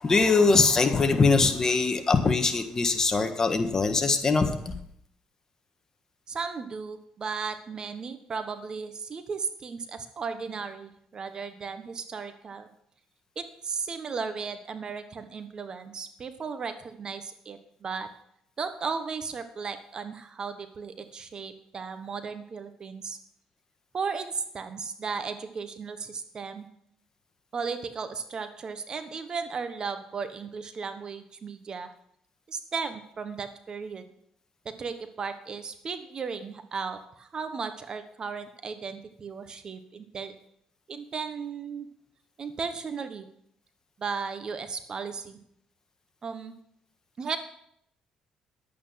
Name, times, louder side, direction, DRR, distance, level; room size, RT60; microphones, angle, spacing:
voice 1, 0.0-4.8, left 4 dB, 30° left, 7 dB, 1.5 m, -22 dB
voice 2, 6.3-12.7 13.4-18.1 18.6-23.2 23.9-26.7 27.5-31.9 32.5-34.0 34.6-40.4 40.9-41.9 42.4-43.3 44.0-45.4 46.2-46.5 47.2-47.4, right 5 dB, 40° right, 9 dB, 1.2 m, -35 dB
11.0 x 8.6 x 5.8 m, 0.71 s
cardioid pair, 90°, 2 cm